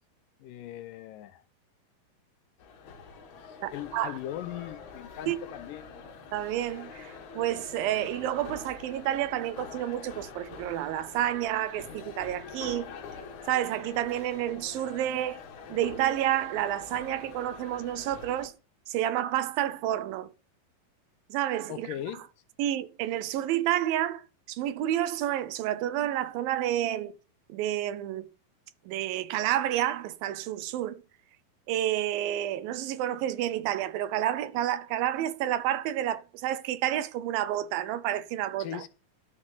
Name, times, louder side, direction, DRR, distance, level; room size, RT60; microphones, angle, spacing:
voice 1, 0.4-1.4 3.4-5.9 21.7-22.2 38.6-38.9, left 12 dB, 80° left, 2.3 m, -39 dB
sound 1, 2.6-18.5, left 5 dB, 60° left, 2.8 m, -45 dB
voice 2, 3.6-4.2 5.3-5.4 6.3-13.0 13.5-15.4 15.7-18.5 18.9-20.3 21.3-21.9 22.6-27.1 27.5-28.3 28.9-31.0 31.7-38.8, right 12 dB, 80° right, 2.6 m, -30 dB
12.0 x 6.6 x 5.7 m
omnidirectional pair, 4.1 m